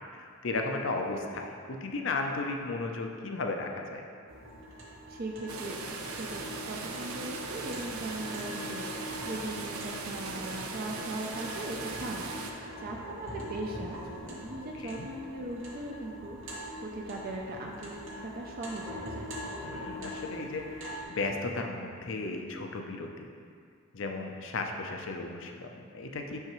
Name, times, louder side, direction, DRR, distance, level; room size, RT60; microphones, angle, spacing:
voice 1, 0.2-1.5 1.8-4.0 14.8-15.1 19.6-23.3 23.9-26.4, left 3 dB, 60° left, 3 dB, 0.5 m, -35 dB
sound 1, 4.3-21.0, equal, 60° right, 0.9 m, -43 dB
voice 2, 5.1-19.3, right 1 dB, 45° right, 0 dB, 0.4 m, -39 dB
sound 2, 5.5-12.5, right 3 dB, 90° right, 0.5 m, -39 dB
5.8 x 5.6 x 3.0 m, 2.2 s
head